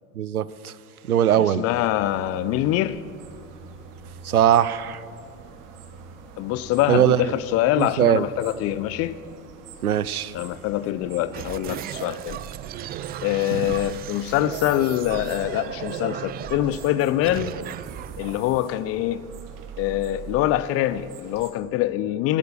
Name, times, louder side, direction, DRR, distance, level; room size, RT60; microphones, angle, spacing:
voice 1, 0.2-0.7 1.0-1.6 4.2-5.0 6.9-7.2 7.8-8.3 9.8-10.3 13.5-13.6, right 10 dB, 85° right, 0.6 m, -20 dB
voice 2, 1.3-3.0 6.4-9.2 10.3-12.4 13.2-17.5 18.2-19.2 19.8-22.4, left 14 dB, 35° left, 0.5 m, -24 dB
sound 1, 1.7-21.5, right 5 dB, 45° right, 1.8 m, -44 dB
sound 2, 11.3-19.5, right 11 dB, 25° right, 0.4 m, -36 dB
12.5 x 12.5 x 6.6 m
figure-of-eight pair, 75°, 43 cm